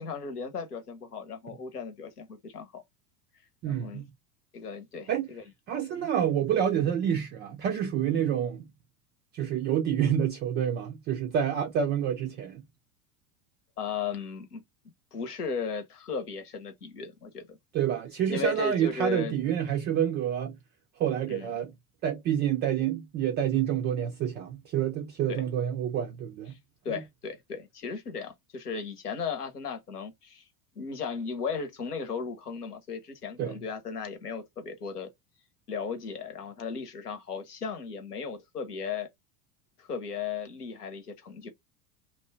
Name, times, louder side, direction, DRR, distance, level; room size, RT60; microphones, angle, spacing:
voice 1, 0.0-2.8 3.6-4.0 4.5-5.4 5.9-6.1 8.1-8.3 13.8-14.6 15.1-17.6 18.3-19.4 21.3-21.5 25.3-25.5 26.8-30.4 30.7-35.1 35.7-39.1 39.8-41.5, left 5 dB, 85° left, 1.0 m, -36 dB
voice 2, 3.6-4.0 5.1-5.3 5.7-8.7 9.3-12.6 17.7-20.6 21.0-21.7 22.0-26.5 26.9-27.0 33.4-33.6, right 9 dB, 25° right, 0.3 m, -28 dB
2.8 x 2.3 x 4.2 m
hypercardioid pair, 85°, 45 cm